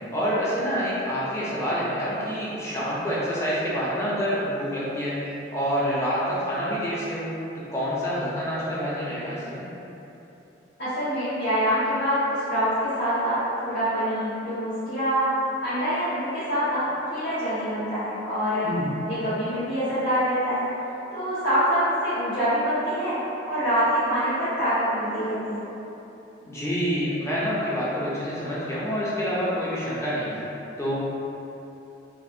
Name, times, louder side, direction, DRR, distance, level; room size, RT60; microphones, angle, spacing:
voice 1, 0.1-9.6 18.6-18.9 26.4-30.4 30.8-31.0, equal, 15° left, -8 dB, 0.4 m, -27 dB
voice 2, 10.8-15.3 15.6-18.7 19.0-20.7 21.1-23.2 23.5-25.7, equal, 60° left, -19 dB, 1.3 m, -25 dB
2.5 x 2.5 x 2.6 m, 3.0 s
head